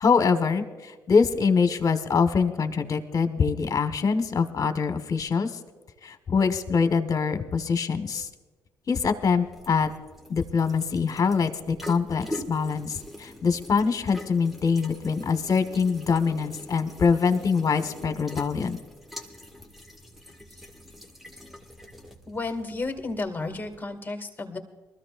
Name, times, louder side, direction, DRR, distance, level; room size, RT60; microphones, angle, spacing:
voice 1, 0.0-5.5 6.0-8.3 8.9-9.9 10.3-18.8, left 5 dB, 45° left, 9 dB, 1.4 m, -24 dB
sound 1, 9.0-23.9, left 1 dB, 5° right, 1.9 m, -44 dB
voice 2, 22.3-24.6, left 3 dB, 25° left, 4 dB, 2.1 m, -32 dB
23.0 x 14.0 x 2.5 m, 1.3 s
hypercardioid pair, 50°, 8 cm